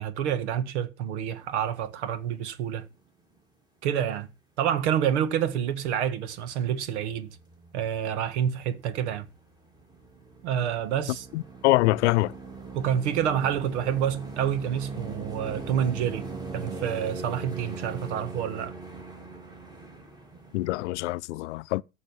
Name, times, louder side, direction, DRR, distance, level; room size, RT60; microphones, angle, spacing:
voice 1, 0.0-2.8 3.8-4.3 4.6-7.3 7.7-9.3 10.4-11.3 12.7-16.2 16.5-18.7, right 9 dB, 70° right, 1.7 m, -28 dB
sound 1, 1.4-1.7 2.0-2.3 2.7-2.8 4.9-5.0 5.2-9.4 9.7-20.9, right 3 dB, 10° right, 3.1 m, -40 dB
voice 2, 11.3-12.3 20.5-21.8, left 19 dB, 75° left, 0.7 m, -24 dB
14.0 x 6.6 x 5.6 m
supercardioid pair, 145°, 35 cm